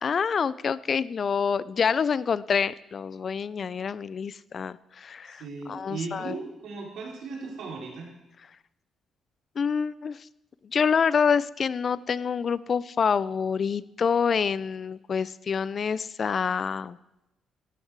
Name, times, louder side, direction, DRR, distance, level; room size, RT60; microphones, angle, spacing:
voice 1, 0.0-5.4 5.7-6.3 9.6-10.2 10.6-17.0, left 6 dB, 45° left, 19 dB, 0.4 m, -27 dB
voice 2, 5.2-8.1, right 4 dB, 75° right, 0 dB, 3.7 m, -37 dB
13.0 x 12.5 x 4.7 m, 0.93 s
cardioid pair, 90°, 0 cm